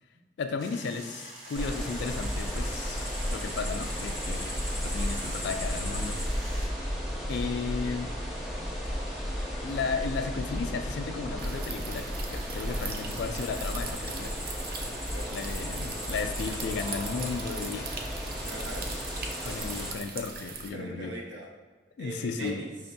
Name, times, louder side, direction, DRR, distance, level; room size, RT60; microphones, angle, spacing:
voice 1, 0.4-6.2 7.3-8.1 9.6-14.3 15.3-17.9 19.4-21.1 22.0-22.6, left 4 dB, 65° left, 7 dB, 0.3 m, -34 dB
sound 1, 0.6-6.7, right 1 dB, 40° right, 1.0 m, -45 dB
sound 2, 1.5-19.9, equal, ahead, 0.6 m, -34 dB
sound 3, 11.4-20.7, right 4 dB, 55° right, 0.4 m, -41 dB
voice 2, 14.8-15.3 18.4-18.9 20.7-21.5 22.0-22.7, right 1 dB, 85° right, -1 dB, 0.8 m, -40 dB
5.6 x 2.6 x 2.2 m, 1.3 s
head